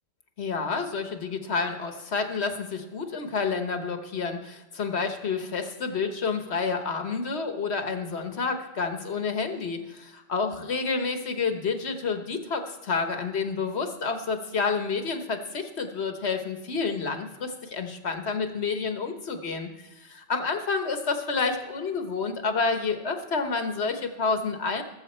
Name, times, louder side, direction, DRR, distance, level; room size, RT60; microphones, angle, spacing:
voice 1, 0.4-24.8, left 4 dB, 80° left, 6 dB, 1.5 m, -29 dB
19.5 x 7.4 x 4.4 m, 1.1 s
omnidirectional pair, 1.1 m